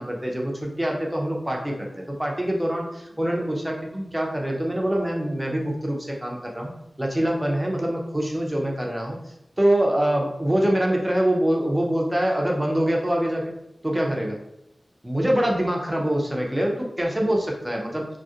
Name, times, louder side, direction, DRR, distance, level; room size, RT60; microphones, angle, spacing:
voice 1, 0.0-6.7 7.0-9.2 9.6-13.4 13.8-14.4 15.0-18.1, right 1 dB, 15° right, -1 dB, 0.5 m, -24 dB
2.7 x 2.0 x 2.3 m, 0.84 s
wide cardioid pair, 65°, 0 cm